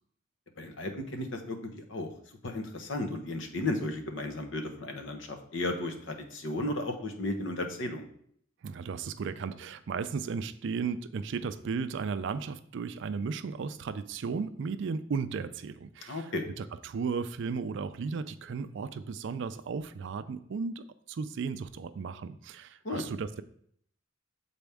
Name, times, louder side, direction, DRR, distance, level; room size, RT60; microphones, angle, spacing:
voice 1, 0.6-2.1 2.4-8.1 16.1-16.4 22.8-23.0, left 2 dB, 65° left, 5 dB, 0.9 m, -34 dB
voice 2, 8.6-23.4, right 5 dB, 60° right, 12 dB, 0.4 m, -35 dB
7.0 x 4.2 x 3.4 m, 0.64 s
head